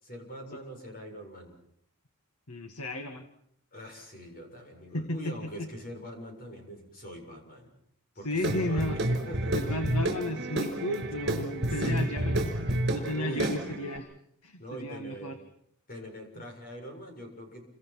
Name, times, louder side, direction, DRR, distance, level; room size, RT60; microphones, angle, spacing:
voice 1, 0.0-1.5 3.7-7.7 8.1-9.7 11.6-12.1 13.1-13.9 14.6-15.4 15.9-17.7, equal, 40° left, 4 dB, 6.9 m, -43 dB
voice 2, 2.5-3.3 4.9-5.7 8.2-9.0 9.5-14.1 14.4-15.4, left 1 dB, 90° left, 7 dB, 2.0 m, -34 dB
Guitar / Drum, 8.4-14.0, right 1 dB, 50° right, 5.1 m, -30 dB
29.0 x 26.0 x 6.0 m, 0.68 s
head